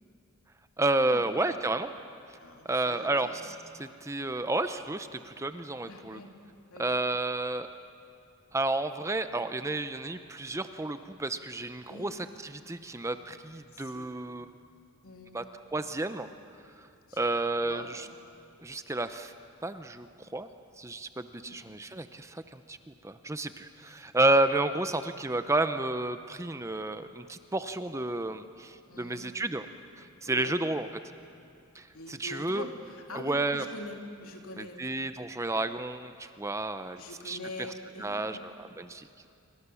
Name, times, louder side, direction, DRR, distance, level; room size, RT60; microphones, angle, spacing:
voice 1, 0.8-1.9 2.6-6.2 6.8-7.7 8.5-14.5 15.3-15.4 15.7-16.3 17.2-18.1 18.6-19.3 19.6-20.5 20.8-29.7 30.0-30.9 31.7-32.7 33.1-33.6 34.6-37.4 38.0-39.1, right 2 dB, 15° right, 10 dB, 0.6 m, -31 dB
voice 2, 2.4-3.3 5.5-5.6 5.9-6.3 6.7-6.9 11.9-12.1 13.7-14.1 15.0-15.6 17.1-17.3 17.6-18.0 21.4-21.6 24.2-24.3 28.9-29.3 30.2-30.5 31.9-34.9 37.0-38.5, left 2 dB, 75° left, 2 dB, 3.0 m, -44 dB
28.0 x 24.5 x 7.0 m, 2.7 s
head